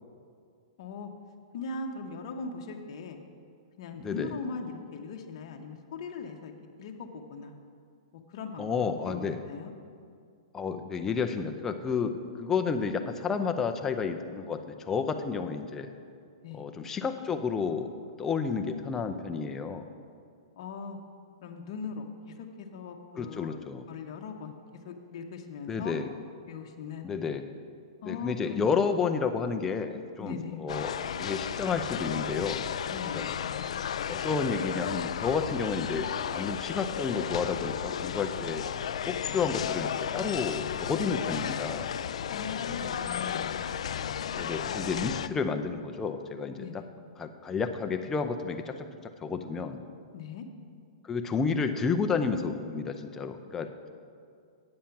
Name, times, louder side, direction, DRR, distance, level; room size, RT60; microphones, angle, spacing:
voice 1, 0.8-1.1 1.5-3.2 3.8-6.5 6.8-7.5 8.3-9.7 16.4-16.7 20.6-21.0 21.4-22.0 22.6-23.6 23.9-24.6 24.8-26.0 26.5-27.1 28.0-28.8 30.2-30.6 32.9-33.3 42.3-43.5 46.6-46.8 50.1-50.4, left 5 dB, 50° left, 3 dB, 0.9 m, -39 dB
voice 2, 4.0-4.3 8.6-9.4 10.5-15.9 16.5-17.9 18.2-19.8 23.2-23.9 25.7-26.1 27.0-27.4 28.0-32.6 33.2-33.3 34.1-38.6 39.1-41.9 44.3-46.8 47.2-48.8 49.2-49.8 51.1-53.7, left 5 dB, 10° left, 5 dB, 0.5 m, -31 dB
sound 1, 30.7-45.3, left 8 dB, 80° left, 0.3 m, -33 dB
8.6 x 7.5 x 5.8 m, 2.3 s
hypercardioid pair, 150°, 3 cm